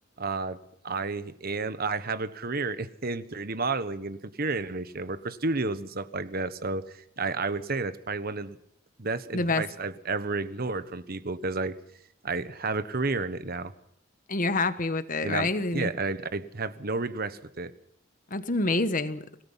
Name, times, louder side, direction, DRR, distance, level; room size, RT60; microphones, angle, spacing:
voice 1, 0.2-0.6 0.8-8.6 9.0-11.8 12.2-13.7 15.2-17.7, right 3 dB, 50° right, 13 dB, 1.3 m, -31 dB
voice 2, 14.3-15.9 18.3-19.2, left 3 dB, 40° left, 11 dB, 1.4 m, -27 dB
26.5 x 18.0 x 5.7 m, 0.69 s
head